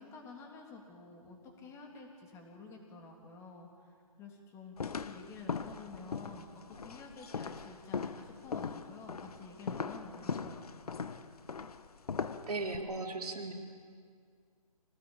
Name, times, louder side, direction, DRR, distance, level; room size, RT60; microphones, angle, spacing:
voice 1, 0.0-10.6, left 4 dB, 15° left, 1 dB, 3.2 m, -50 dB
sound 1, 4.8-12.8, left 5 dB, 75° left, 1.3 m, -40 dB
voice 2, 12.5-13.5, right 3 dB, 80° right, 2 dB, 4.2 m, -37 dB
25.5 x 19.0 x 8.9 m, 2.1 s
hypercardioid pair, 150°, 19 cm